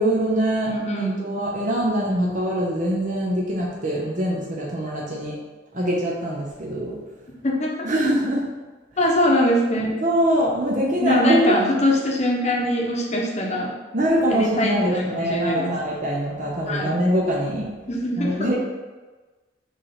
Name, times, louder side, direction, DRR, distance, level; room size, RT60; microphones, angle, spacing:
voice 1, 0.0-5.3 5.7-6.9 7.8-8.5 10.0-11.6 13.9-17.7 18.2-18.6, right 1 dB, 45° right, -3 dB, 0.9 m, -23 dB
voice 2, 0.6-1.3 7.3-8.0 9.0-10.0 11.0-13.7 14.3-15.8 16.7-17.0 17.9-18.5, left 1 dB, 35° left, -1 dB, 1.0 m, -23 dB
5.3 x 3.3 x 5.6 m, 1.3 s
head